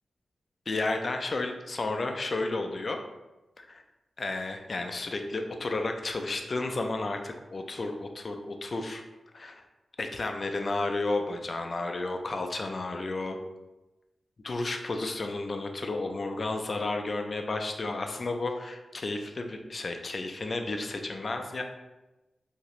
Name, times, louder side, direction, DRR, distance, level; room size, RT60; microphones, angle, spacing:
voice 1, 0.7-3.0 3.6-3.8 4.2-9.0 9.3-9.6 10.0-13.4 14.4-21.6, left 2 dB, 45° left, 4 dB, 0.3 m, -32 dB
2.8 x 2.5 x 3.0 m, 1.0 s
wide cardioid pair, 115°, 0 cm